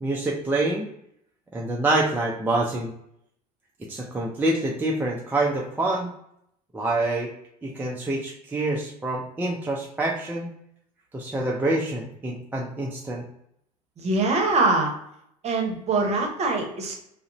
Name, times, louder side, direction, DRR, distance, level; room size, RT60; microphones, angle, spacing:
voice 1, 0.0-0.9 1.5-2.9 3.9-6.1 6.7-7.3 7.6-10.5 11.1-13.2, right 2 dB, 10° right, -2 dB, 0.4 m, -26 dB
voice 2, 14.0-14.9 15.4-16.9, right 3 dB, 30° right, 1 dB, 0.8 m, -23 dB
2.4 x 2.0 x 2.9 m, 0.73 s
hypercardioid pair, 70°, 21 cm